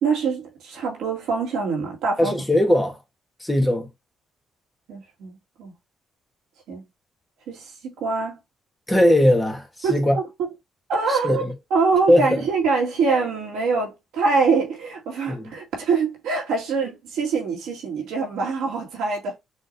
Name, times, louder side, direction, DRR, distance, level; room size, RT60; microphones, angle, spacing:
voice 1, 0.0-2.4 4.9-5.7 6.7-6.8 7.5-8.4 9.8-10.3 10.9-11.4 11.7-19.4, right 4 dB, 90° right, 2.2 m, -24 dB
voice 2, 2.2-3.0 3.4-3.9 8.9-10.2 11.1-11.5 12.1-12.4 15.3-15.5, left 1 dB, 10° left, 1.5 m, -19 dB
6.3 x 2.9 x 2.7 m
cardioid pair, 90°, 0 cm